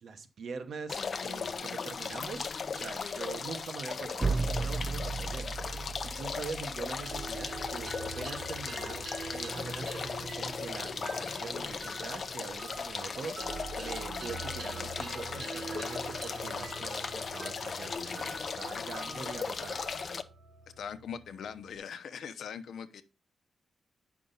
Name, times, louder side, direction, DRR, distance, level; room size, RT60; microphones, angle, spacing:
voice 1, 0.0-5.5 6.0-19.8, right 5 dB, 60° right, 1.1 m, -43 dB
sound 1, 0.9-20.2, left 5 dB, 40° left, 0.6 m, -37 dB
sound 2, 4.2-8.1, right 4 dB, 20° right, 0.3 m, -35 dB
sound 3, 7.1-21.8, right 3 dB, 45° right, 1.3 m, -44 dB
voice 2, 20.8-23.0, left 7 dB, 75° left, 0.8 m, -41 dB
9.3 x 6.0 x 3.9 m
wide cardioid pair, 175°, 0 cm